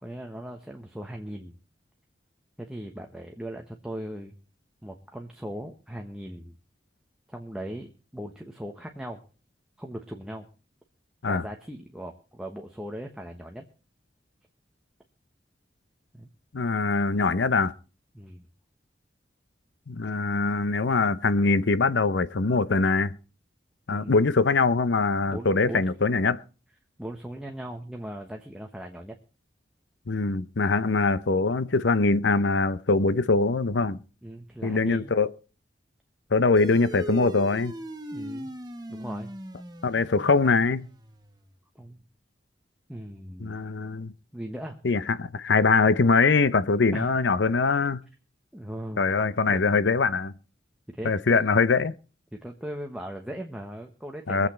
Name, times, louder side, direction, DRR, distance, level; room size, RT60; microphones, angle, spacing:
voice 1, 0.0-1.6 2.6-4.3 4.8-6.6 7.3-9.2 9.8-10.5 11.3-13.7 16.1-16.3 18.1-18.5 23.9-24.1 25.3-25.8 27.0-29.2 34.2-35.2 38.1-38.5 38.9-39.3 41.7-42.0 42.9-43.6 44.3-44.8 46.9-47.1 48.5-49.1 49.5-49.6 50.9-51.5 52.3-54.5, equal, 5° right, 1.1 m, -38 dB
voice 2, 16.5-17.7 19.9-23.2 23.9-26.4 30.1-34.0 34.6-35.3 36.3-37.7 39.8-40.9 43.4-44.1 44.8-48.0 49.0-50.3 51.0-52.0 54.3-54.5, left 4 dB, 90° left, 0.7 m, -23 dB
sound 1, 36.6-41.4, right 1 dB, 20° right, 1.4 m, -39 dB
23.0 x 8.4 x 4.4 m
head